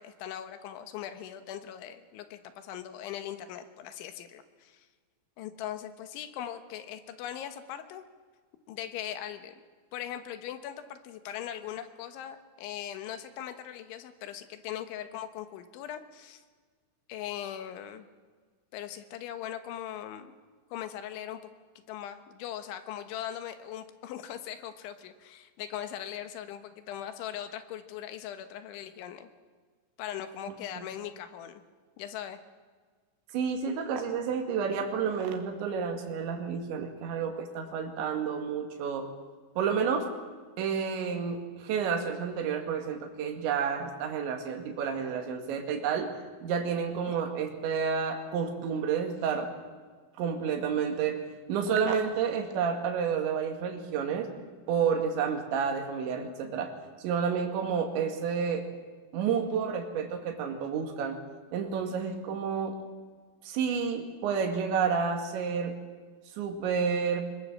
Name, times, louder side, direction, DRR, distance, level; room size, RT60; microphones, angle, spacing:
voice 1, 0.0-4.9 5.4-8.0 8.7-9.6 9.9-16.4 17.1-18.1 18.7-20.4 20.7-21.4 21.9-29.3 30.0-31.6 32.0-32.4 47.1-47.2, left 10 dB, 75° left, 9 dB, 3.4 m, -40 dB
voice 2, 33.3-39.1 39.6-40.1 40.6-46.1 46.4-49.5 50.2-51.2 51.5-54.3 54.7-56.7 57.0-58.7 59.1-61.2 61.5-62.8 63.4-65.8 66.4-67.2, right 6 dB, 65° right, 4 dB, 4.3 m, -30 dB
25.0 x 22.5 x 7.5 m, 1.5 s
omnidirectional pair, 5.9 m